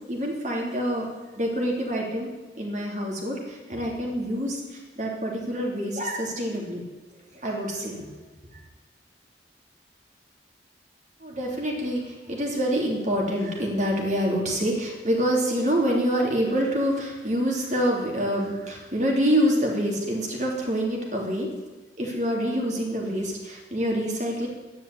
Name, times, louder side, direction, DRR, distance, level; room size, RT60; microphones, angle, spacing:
voice 1, 0.1-1.1 1.4-2.3 2.6-6.8 7.3-8.1 11.2-21.5 22.0-24.5, equal, 40° right, -1 dB, 3.3 m, -26 dB
13.0 x 10.5 x 8.6 m, 1.2 s
head